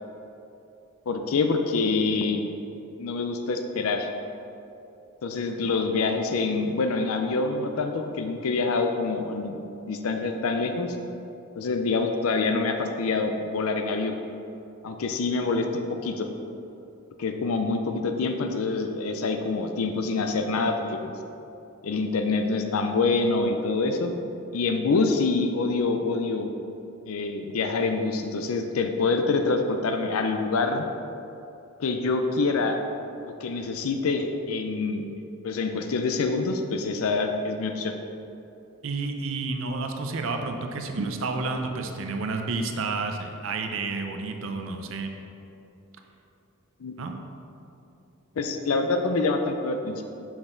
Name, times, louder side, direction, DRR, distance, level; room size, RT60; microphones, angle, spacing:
voice 1, 1.1-2.4 3.0-4.1 5.2-11.0 11.6-14.2 14.8-16.3 17.2-21.1 21.8-24.1 24.5-26.5 27.1-30.9 31.8-32.8 33.4-35.1 35.4-38.0 46.8-46.9 48.4-50.0, left 3 dB, 80° left, 6 dB, 0.5 m, -26 dB
voice 2, 38.8-45.1 47.0-47.1, right 3 dB, 65° right, 5 dB, 0.6 m, -30 dB
6.1 x 6.0 x 3.8 m, 2.8 s
head